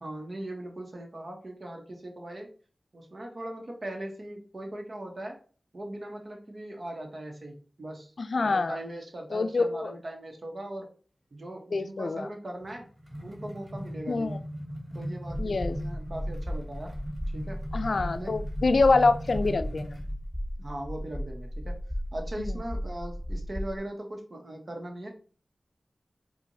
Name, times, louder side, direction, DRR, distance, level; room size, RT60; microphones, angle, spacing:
voice 1, 0.0-2.5 2.9-5.4 5.7-8.1 8.4-10.9 11.3-12.9 13.2-14.3 14.9-16.9 17.3-17.6 18.1-18.3 20.6-21.7 22.1-25.1, right 1 dB, 55° right, 2 dB, 1.1 m, -39 dB
voice 2, 8.2-8.8 9.3-9.9 11.7-12.3 14.1-14.4 15.4-15.8 17.7-20.0 22.4-22.5, left 3 dB, 75° left, 11 dB, 0.3 m, -25 dB
sound 1, 12.6-20.1, equal, 40° right, 1.3 m, -39 dB
sound 2, 15.3-23.8, equal, 10° right, 0.8 m, -35 dB
4.6 x 2.4 x 2.7 m, 0.40 s
cardioid pair, 45°, 0 cm